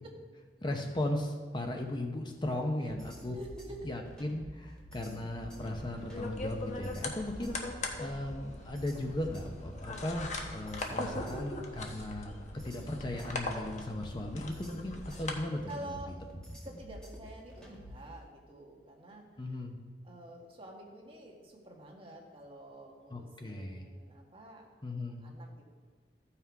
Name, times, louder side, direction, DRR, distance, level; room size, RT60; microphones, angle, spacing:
voice 1, 0.6-3.4 3.8-7.5 8.0-12.3 12.6-16.0 19.4-19.8 23.1-23.9 24.8-25.2, left 1 dB, 25° left, 3 dB, 0.8 m, -37 dB
sound 1, 2.9-18.1, equal, 5° left, 2.2 m, -49 dB
voice 2, 3.3-3.9 15.7-16.2 16.6-19.3 19.5-19.6 20.0-24.7 25.2-25.6, right 1 dB, 30° right, -1 dB, 1.8 m, -48 dB
sound 2, 5.7-15.3, left 2 dB, 45° left, 1.2 m, -41 dB
14.0 x 5.8 x 4.7 m, 1.4 s
head